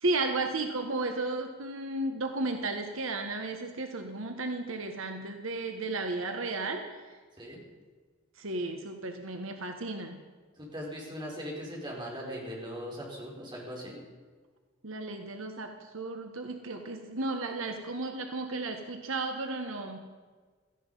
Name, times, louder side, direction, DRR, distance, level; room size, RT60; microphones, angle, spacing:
voice 1, 0.0-7.0 8.4-10.2 14.8-20.0, right 2 dB, 80° right, 5 dB, 1.4 m, -34 dB
voice 2, 10.6-14.0, equal, 20° right, -2 dB, 4.5 m, -39 dB
17.5 x 14.0 x 5.5 m, 1.5 s
head